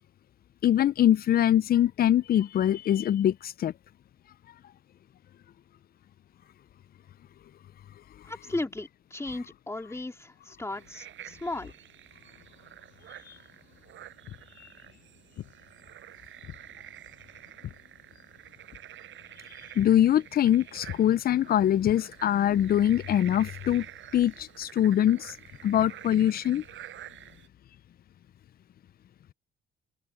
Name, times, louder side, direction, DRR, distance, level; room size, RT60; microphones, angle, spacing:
voice 1, 0.6-3.7 19.8-23.9 24.1-25.3 25.6-26.6, left 11 dB, 50° left, 0.5 m, -23 dB
voice 2, 8.3-11.7, left 2 dB, 15° left, 2.7 m, -35 dB
sound 1, 10.7-27.5, right 12 dB, 75° right, 6.0 m, -49 dB
Walk footsteps, 14.2-14.5 15.4-15.6 16.4-16.7 17.0-18.4 18.7-18.9 19.3-19.5 19.8-20.0 20.3-20.6 20.8-21.1 21.8-22.5, left 12 dB, 80° left, 6.2 m, -42 dB
open air
cardioid pair, 90°, 20 cm